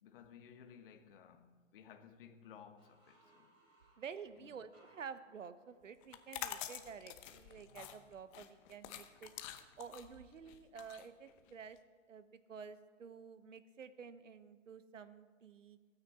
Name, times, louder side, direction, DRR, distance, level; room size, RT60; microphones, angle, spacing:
voice 1, 0.0-3.5 4.4-4.6, left 7 dB, 45° left, 1.3 m, -58 dB
sound 1, 2.8-6.4, right 1 dB, 25° right, 5.7 m, -70 dB
voice 2, 4.0-9.3 9.8-11.8 12.1-15.8, right 6 dB, 80° right, 1.2 m, -51 dB
sound 2, 6.0-11.8, left 12 dB, 25° left, 0.9 m, -47 dB
27.5 x 9.5 x 4.3 m
hypercardioid pair, 135°, 37 cm